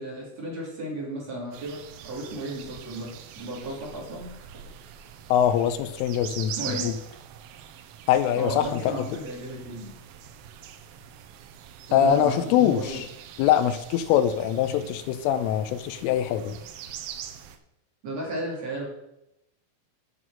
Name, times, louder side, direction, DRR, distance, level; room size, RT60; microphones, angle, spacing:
voice 1, 0.0-4.5 6.6-6.9 8.4-9.9 11.9-13.0 18.0-18.9, right 1 dB, 40° right, -3 dB, 2.9 m, -34 dB
sound 1, 1.5-17.6, right 9 dB, 80° right, 3.1 m, -43 dB
voice 2, 5.3-6.9 8.1-9.1 11.9-13.1 13.4-16.6, left 10 dB, 85° left, 12 dB, 3.0 m, -23 dB
9.4 x 6.1 x 6.2 m, 0.86 s
omnidirectional pair, 6.0 m